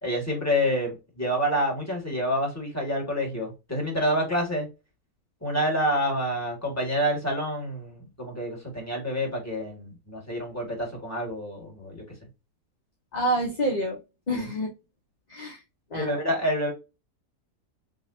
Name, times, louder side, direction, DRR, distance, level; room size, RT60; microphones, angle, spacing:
voice 1, 0.0-4.7 5.4-12.0 14.3-14.4 15.9-16.7, equal, 10° left, 2.2 m, -28 dB
voice 2, 13.1-14.0 14.3-14.7 15.3-15.6 15.9-16.2, right 1 dB, 35° left, 0.8 m, -28 dB
4.8 x 3.1 x 2.7 m
omnidirectional pair, 1.8 m